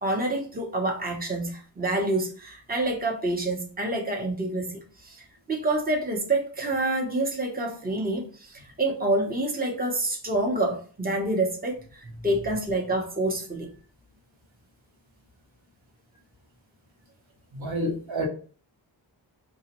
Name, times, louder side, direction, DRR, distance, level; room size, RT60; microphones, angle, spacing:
voice 1, 0.0-5.2 5.5-13.7, right 2 dB, 20° right, 0 dB, 1.0 m, -27 dB
voice 2, 17.5-18.2, right 1 dB, 85° right, -3 dB, 1.6 m, -29 dB
4.7 x 2.9 x 3.0 m, 0.40 s
wide cardioid pair, 85°, 45 cm